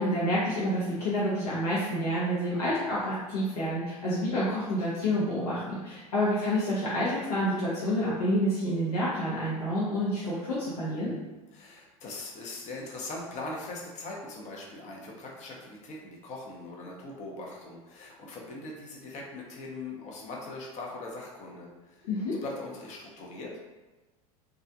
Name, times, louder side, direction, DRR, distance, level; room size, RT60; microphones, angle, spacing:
voice 1, 0.0-11.1 22.0-22.3, equal, 80° left, -8 dB, 0.7 m, -28 dB
voice 2, 11.5-23.6, left 2 dB, 40° left, -2 dB, 0.7 m, -41 dB
2.3 x 2.1 x 2.7 m, 1.2 s
hypercardioid pair, 90°, 19 cm